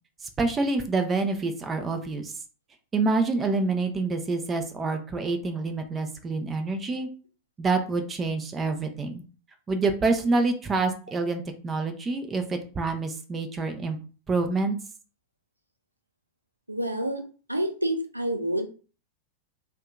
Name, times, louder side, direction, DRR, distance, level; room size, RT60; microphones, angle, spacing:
voice 1, 0.4-2.3 2.9-7.1 7.6-9.2 9.7-14.0 14.3-14.8, right 3 dB, 20° right, 6 dB, 0.5 m, -27 dB
voice 2, 16.7-17.2 17.5-18.7, right 1 dB, 85° right, 4 dB, 0.4 m, -28 dB
2.7 x 2.2 x 3.6 m, 0.37 s
figure-of-eight pair, 90°, 0 cm